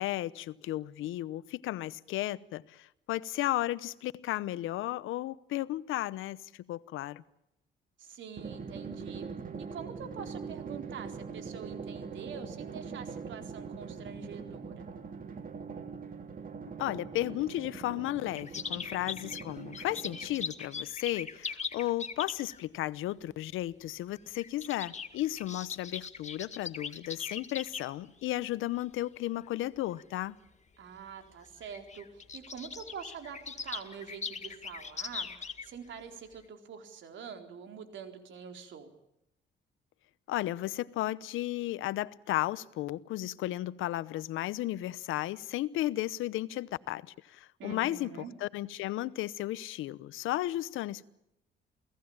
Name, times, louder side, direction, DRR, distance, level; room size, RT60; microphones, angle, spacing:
voice 1, 0.0-7.2 16.8-30.4 40.3-48.1 48.4-51.1, left 15 dB, 90° left, 0.9 m, -34 dB
voice 2, 8.0-9.3 9.6-14.8 30.8-35.3 35.6-38.9 47.6-48.3, right 7 dB, 70° right, 4.2 m, -45 dB
Drum, 8.4-20.7, right 5 dB, 45° right, 2.8 m, -42 dB
sound 1, 18.4-22.6 23.6-23.9 24.2-27.8 28.5-28.8 29.4-29.5 29.9-30.0 31.0-31.1 31.3-31.4 31.6-36.0 36.3-36.4, left 5 dB, 35° left, 2.0 m, -40 dB
28.5 x 18.0 x 8.9 m
cardioid pair, 90°, 20 cm